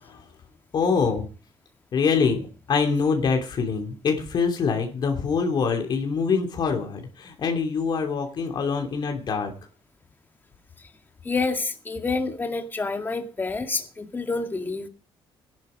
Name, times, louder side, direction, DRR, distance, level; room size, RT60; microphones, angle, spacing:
voice 1, 0.7-1.3 1.9-2.4 2.7-9.5, left 5 dB, 50° left, 2.8 m, -24 dB
voice 2, 11.3-14.9, left 3 dB, 20° left, 2.0 m, -28 dB
18.0 x 11.0 x 5.0 m
cardioid pair, 135°, 9 cm